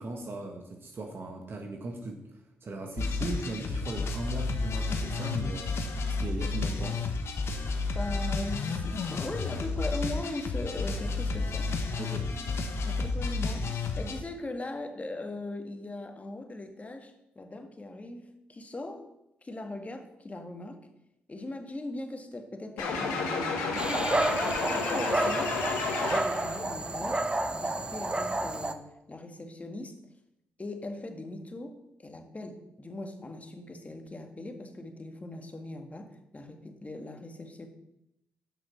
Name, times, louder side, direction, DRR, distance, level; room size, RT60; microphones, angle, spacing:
voice 1, 0.0-5.8 6.2-7.0 12.0-12.3, right 2 dB, 50° right, 2 dB, 1.5 m, -38 dB
sound 1, 3.0-14.2, left 3 dB, 65° left, 1.2 m, -31 dB
voice 2, 7.9-11.7 12.8-19.1 19.4-20.8 21.3-24.2 24.7-25.6 26.0-30.0 30.6-37.7, left 2 dB, 30° left, 5 dB, 1.8 m, -40 dB
sound 2, 22.8-26.6, left 4 dB, 90° left, 1.4 m, -31 dB
Dog, 23.8-28.7, right 2 dB, 20° right, 0.9 m, -30 dB
9.0 x 6.2 x 5.9 m, 0.84 s
supercardioid pair, 45°, 5 cm